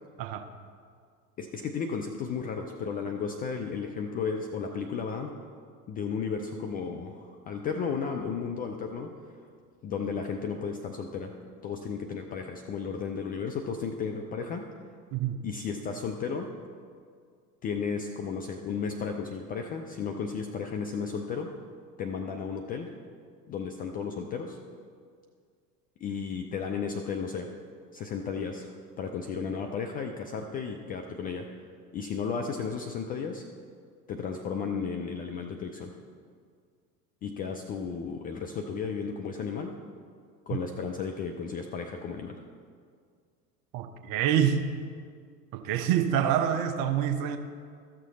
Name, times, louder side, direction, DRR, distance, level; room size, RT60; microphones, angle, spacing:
voice 1, 1.4-5.3 5.9-9.1 9.8-11.3 11.6-14.7 15.4-16.5 17.6-21.5 22.0-22.9 23.5-24.6 26.0-27.5 27.9-28.7 29.0-31.5 31.9-33.5 34.1-35.9 37.2-39.8 40.5-42.4, left 5 dB, 20° left, 4 dB, 0.4 m, -34 dB
voice 2, 15.1-15.4 43.7-44.6 45.5-47.4, right 9 dB, 45° right, 8 dB, 0.9 m, -26 dB
14.0 x 6.5 x 4.1 m, 2.1 s
figure-of-eight pair, 80°, 49 cm